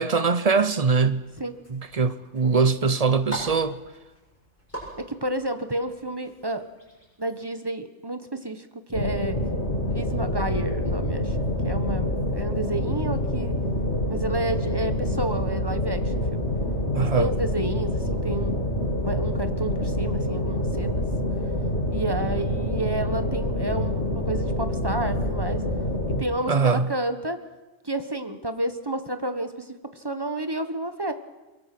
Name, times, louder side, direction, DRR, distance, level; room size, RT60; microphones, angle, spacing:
voice 1, 0.0-1.2 1.7-3.8 16.9-17.3 26.5-26.9, right 4 dB, 35° right, 0.7 m, -22 dB
sound 1, 0.8-7.3, equal, 10° left, 7.9 m, -43 dB
voice 2, 5.0-6.6 7.2-9.4 9.9-13.5 14.1-16.4 17.0-18.6 19.0-21.0 21.9-25.6 26.1-27.4 27.8-29.7 29.9-31.1, right 2 dB, 20° right, 1.2 m, -30 dB
sound 2, 8.9-26.2, left 1 dB, 60° left, 2.8 m, -26 dB
23.0 x 22.0 x 6.1 m
omnidirectional pair, 1.3 m